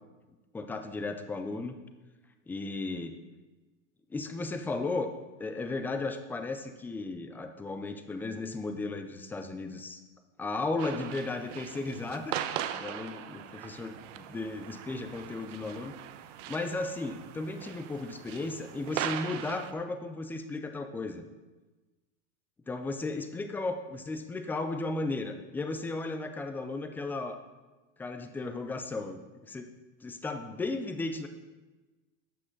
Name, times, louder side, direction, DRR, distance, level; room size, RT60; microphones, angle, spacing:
voice 1, 0.5-1.8 2.5-3.1 4.1-5.1 5.4-10.0 10.4-12.4 12.7-15.9 16.5-21.2 22.7-27.4 28.0-29.2 29.5-29.7 30.0-31.3, left 3 dB, 5° left, 7 dB, 0.3 m, -35 dB
sound 1, 10.8-19.7, right 10 dB, 80° right, 0.8 m, -40 dB
12.0 x 7.6 x 3.8 m, 1.2 s
supercardioid pair, 140°, 37 cm